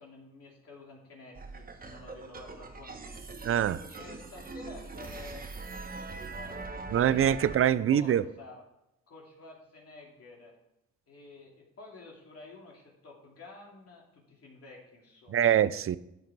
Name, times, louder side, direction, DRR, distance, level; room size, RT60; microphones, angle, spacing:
voice 1, 0.0-3.3 3.9-5.5 6.3-6.9 7.4-8.6 9.1-10.5 11.1-15.5, left 3 dB, 50° left, 2.8 m, -50 dB
sound 1, 1.3-7.6, right 3 dB, 30° right, 1.3 m, -42 dB
voice 2, 3.4-3.8 6.9-8.2 15.3-16.0, right 10 dB, 45° right, 0.5 m, -24 dB
11.0 x 7.6 x 4.7 m
cardioid pair, 90°, 30 cm